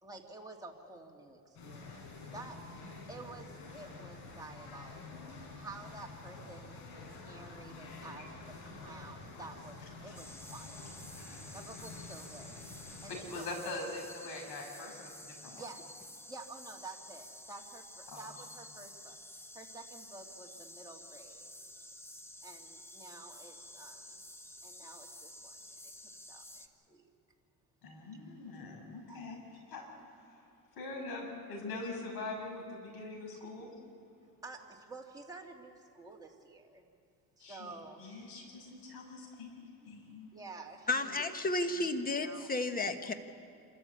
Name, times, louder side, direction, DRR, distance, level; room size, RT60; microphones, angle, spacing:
voice 1, 0.0-6.8 7.1-10.9 11.5-12.7 13.0-13.5 15.5-15.9 16.3-21.5 22.4-24.2 24.6-25.9 26.3-27.1 29.1-29.4 34.4-36.9 37.4-38.0 40.3-41.3 41.7-42.5, right 3 dB, 10° right, -1 dB, 2.4 m, -51 dB
sound 1, 1.5-13.2, left 3 dB, 85° left, 5.5 m, -49 dB
sound 2, 10.2-26.7, left 1 dB, 5° left, 0.9 m, -51 dB
voice 2, 13.1-15.7 18.1-18.3 27.8-29.4 29.7-29.8 30.3-30.5 30.8-33.7 37.4-37.7 38.0-40.3, left 2 dB, 70° left, 1 dB, 6.9 m, -43 dB
voice 3, 40.9-43.1, left 2 dB, 20° left, 8 dB, 1.4 m, -32 dB
27.0 x 14.0 x 8.4 m, 2.7 s
cardioid pair, 115°, 39 cm